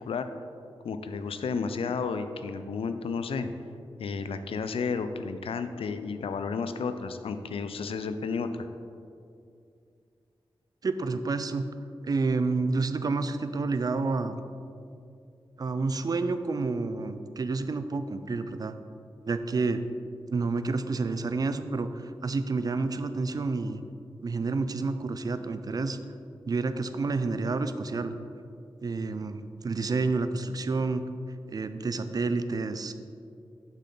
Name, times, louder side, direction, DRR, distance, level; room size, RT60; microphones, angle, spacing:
voice 1, 0.0-0.3 0.8-3.5 4.0-8.7, left 5 dB, 90° left, 10 dB, 0.4 m, -32 dB
voice 2, 10.8-11.7 12.0-14.4 15.6-18.8 19.3-19.8 20.3-23.8 24.2-26.0 26.4-28.1 28.8-31.1 31.5-32.9, right 3 dB, 45° right, 10 dB, 0.4 m, -29 dB
7.2 x 5.6 x 3.9 m, 2.4 s
wide cardioid pair, 80°, 9 cm